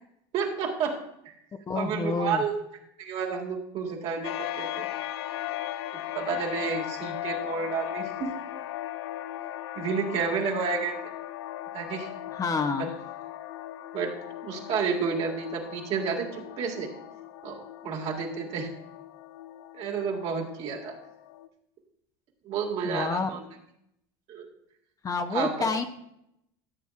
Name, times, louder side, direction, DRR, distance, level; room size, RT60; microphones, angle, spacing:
voice 1, 0.3-1.0 1.7-2.5 3.0-4.3 4.6-4.9 6.1-8.4 9.8-10.9 11.7-12.1 12.7-12.9 13.9-14.1 14.4-16.9 17.4-18.7 19.7-21.0 22.4-23.4 24.3-24.5 25.3-25.7, right 5 dB, 55° right, 1 dB, 1.9 m, -30 dB
voice 2, 1.7-2.4 12.3-12.9 22.8-23.3 25.0-25.9, left 4 dB, 25° left, 8 dB, 0.6 m, -28 dB
sound 1, 4.2-21.5, left 14 dB, 85° left, 0.5 m, -38 dB
13.5 x 7.1 x 2.4 m, 0.78 s
supercardioid pair, 100°, 13 cm